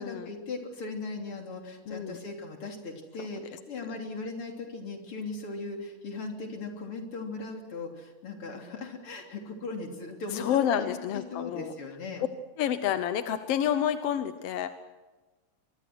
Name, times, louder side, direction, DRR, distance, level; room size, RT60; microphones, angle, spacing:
voice 1, 0.0-12.2, left 3 dB, 45° left, 2 dB, 4.0 m, -38 dB
voice 2, 1.9-2.2 3.5-3.6 10.3-11.7 12.6-14.7, left 9 dB, 65° left, 10 dB, 1.6 m, -29 dB
24.0 x 24.0 x 6.2 m, 1.2 s
omnidirectional pair, 3.6 m